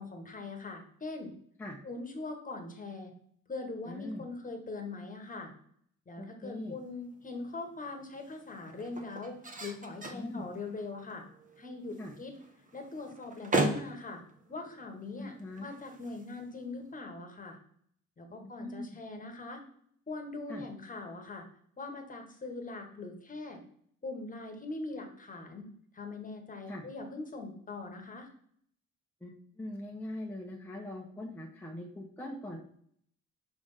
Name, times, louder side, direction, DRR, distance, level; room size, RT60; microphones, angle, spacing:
voice 1, 0.0-1.3 1.8-3.1 3.5-5.5 6.1-11.2 11.6-12.3 12.7-14.2 14.5-17.6 18.2-19.6 20.1-21.5 21.8-23.6 24.0-25.6 25.9-28.3, left 3 dB, 25° left, 4 dB, 1.3 m, -42 dB
voice 2, 3.9-4.2 6.2-6.8 10.1-10.4 12.0-12.1 15.2-15.7 18.3-18.9 20.5-20.6 26.7-26.9 29.2-32.6, left 1 dB, 5° left, -2 dB, 0.9 m, -41 dB
sound 1, 6.6-17.0, right 2 dB, 25° right, 1.0 m, -39 dB
5.0 x 3.5 x 5.5 m, 0.64 s
cardioid pair, 90°, 30 cm